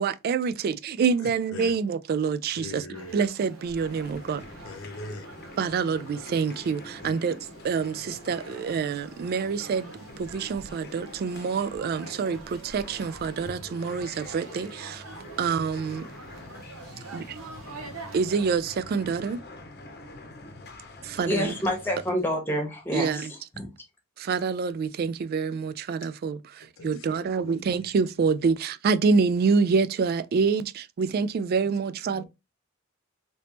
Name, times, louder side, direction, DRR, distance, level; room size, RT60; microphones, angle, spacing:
voice 1, 0.0-2.8 3.1-4.4 5.6-7.4 7.6-15.0 15.4-16.1 17.1-17.4 18.1-19.4 21.0-21.5 22.9-23.3 24.2-32.2, right 5 dB, 50° right, 0.3 m, -27 dB
voice 2, 1.2-1.7 2.5-3.2 4.6-5.3 7.0-7.1 16.9-17.2 26.8-27.8 28.4-28.5 31.6-31.7 32.0-32.2, left 2 dB, 85° left, 0.8 m, -42 dB
sound 1, 2.9-18.6, right 3 dB, 85° right, 0.9 m, -46 dB
sound 2, 3.6-22.1, left 2 dB, 55° left, 0.8 m, -45 dB
voice 3, 21.2-23.7, equal, 10° left, 1.1 m, -28 dB
3.4 x 2.9 x 2.8 m
head